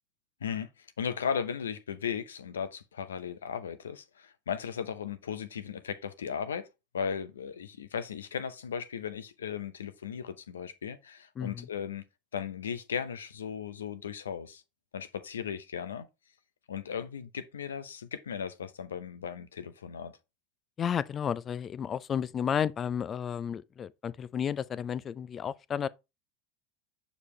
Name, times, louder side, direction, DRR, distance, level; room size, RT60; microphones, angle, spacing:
voice 1, 0.4-6.7 6.9-12.0 12.3-14.6 14.9-16.1 16.7-20.1, left 7 dB, 90° left, 0.6 m, -36 dB
voice 2, 11.4-11.7 20.8-25.9, left 8 dB, 35° left, 0.4 m, -32 dB
6.7 x 5.1 x 3.1 m
hypercardioid pair, 90°, 0 cm